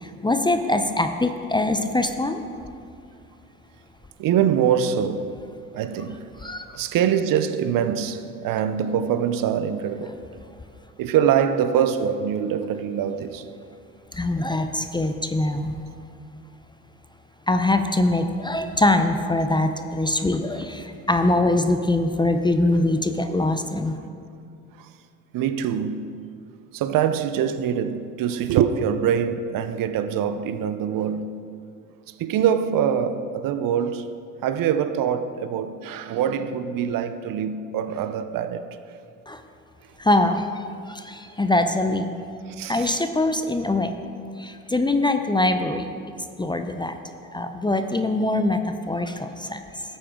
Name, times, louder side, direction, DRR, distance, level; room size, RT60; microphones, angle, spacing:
voice 1, 0.0-2.4 6.4-6.6 14.1-15.7 17.5-24.0 39.3-39.4 40.0-42.1 42.7-44.0 44.4-45.9 46.4-47.0 47.3-48.6 48.9-49.6, left 2 dB, 10° left, 0.6 m, -23 dB
voice 2, 4.2-5.4 5.7-10.2 11.0-13.5 24.8-24.9 25.3-26.2 26.7-31.4 32.1-34.1 34.4-38.8 42.5-43.0, right 8 dB, 55° right, 0.7 m, -24 dB
13.5 x 8.4 x 3.7 m
hypercardioid pair, 70°, 41 cm